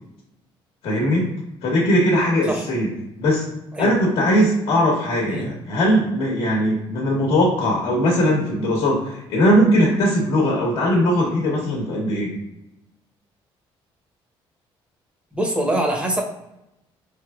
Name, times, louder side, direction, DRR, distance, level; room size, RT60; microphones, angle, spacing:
voice 1, 0.8-1.3 1.6-2.9 3.2-3.4 3.8-12.3, equal, 75° left, -1 dB, 1.0 m, -19 dB
voice 2, 15.3-16.2, right 1 dB, 10° right, 1 dB, 0.7 m, -23 dB
4.3 x 3.1 x 2.3 m, 0.88 s
cardioid pair, 135°, 10 cm